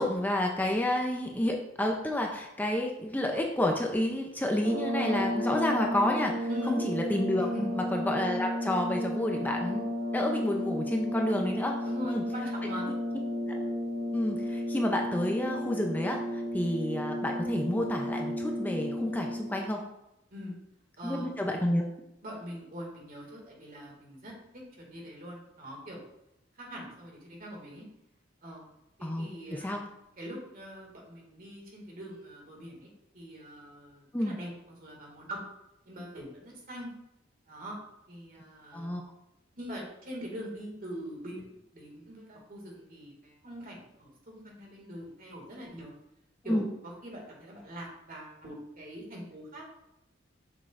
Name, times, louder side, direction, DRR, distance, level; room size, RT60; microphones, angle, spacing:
voice 1, 0.0-7.5 7.9-11.7 12.0-12.2 14.1-19.8 21.0-21.8 29.0-29.8 34.1-34.4 38.7-39.0 46.5-46.6, left 1 dB, 10° left, 1 dB, 0.5 m, -30 dB
sound 1, 4.5-19.7, equal, 90° right, 1.9 m, -33 dB
voice 2, 6.5-6.8 7.4-7.7 11.8-12.9 20.3-20.5 21.0-21.3 22.2-26.0 26.5-27.9 28.4-28.6 29.0-29.9 30.2-35.4 35.8-36.9 37.5-37.8 38.1-39.0 39.5-45.9 46.4-49.6, equal, 50° right, -1 dB, 2.1 m, -42 dB
7.6 x 6.0 x 2.5 m, 0.87 s
head